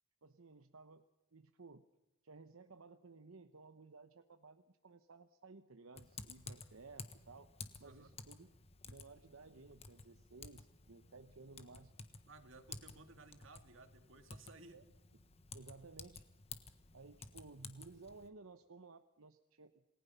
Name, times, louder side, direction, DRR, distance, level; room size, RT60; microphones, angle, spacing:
voice 1, 0.2-1.1 1.3-1.8 2.2-7.5 7.8-8.5 8.8-11.9 14.7-14.8 15.5-16.2 16.9-19.8, right 3 dB, 90° right, 9 dB, 1.0 m, -57 dB
Typing, 6.0-18.3, left 4 dB, 30° left, 1.4 m, -54 dB
voice 2, 7.8-8.1 12.3-14.8, right 3 dB, 75° right, 7 dB, 2.2 m, -58 dB
28.0 x 19.5 x 5.7 m, 0.93 s
head